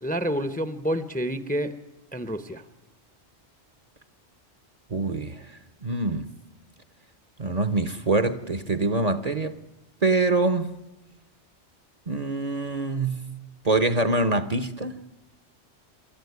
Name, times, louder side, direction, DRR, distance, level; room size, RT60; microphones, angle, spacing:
voice 1, 0.0-1.7 2.1-2.6, equal, 10° left, 0.7 m, -28 dB
voice 2, 4.9-5.5 5.8-6.3 7.4-9.6 10.0-10.8 12.1-13.2 13.6-15.0, right 2 dB, 40° right, 0.9 m, -25 dB
26.5 x 12.5 x 9.4 m
omnidirectional pair, 1.1 m